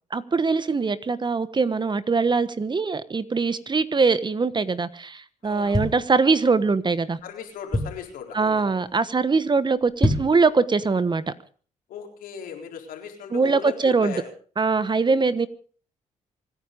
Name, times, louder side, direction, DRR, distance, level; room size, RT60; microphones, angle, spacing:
voice 1, 0.1-7.2 8.3-11.3 13.3-14.1 14.6-15.5, right 4 dB, 30° right, 15 dB, 1.3 m, -22 dB
voice 2, 5.4-5.8 7.2-8.8 11.9-14.3 14.9-15.0, left 8 dB, 85° left, 3 dB, 4.1 m, -37 dB
sound 1, 5.4-6.7 7.2-7.3 7.4-8.2 8.7-8.9 9.2-9.3 9.8-10.5 10.9-11.0, left 1 dB, 5° left, 4.7 m, -26 dB
25.5 x 10.0 x 5.2 m, 0.43 s
cardioid pair, 75°, 14 cm